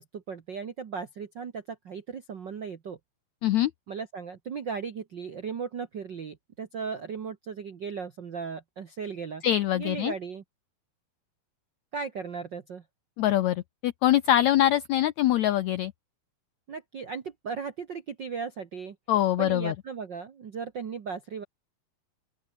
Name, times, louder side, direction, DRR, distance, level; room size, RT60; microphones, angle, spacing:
voice 1, 0.0-3.0 3.9-9.4 9.7-10.4 11.9-12.8 16.7-19.0 19.4-21.4, right 6 dB, 65° right, 1.1 m, -36 dB
voice 2, 9.4-10.1 13.2-15.9 19.1-19.7, left 13 dB, 80° left, 1.6 m, -24 dB
open air
omnidirectional pair, 4.1 m